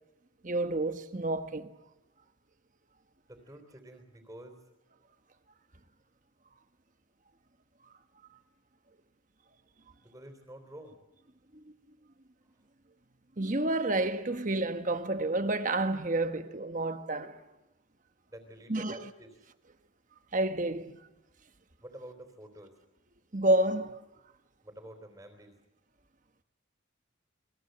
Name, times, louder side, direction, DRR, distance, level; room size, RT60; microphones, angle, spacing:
voice 1, 0.4-1.7 11.5-11.6 13.4-17.4 18.7-19.1 20.3-20.9 23.3-24.0, right 2 dB, 35° right, 1.2 m, -29 dB
voice 2, 3.3-4.6 10.0-11.0 18.3-19.3 21.6-22.8 24.6-25.6, right 1 dB, 15° right, 3.4 m, -49 dB
28.5 x 21.5 x 7.9 m
head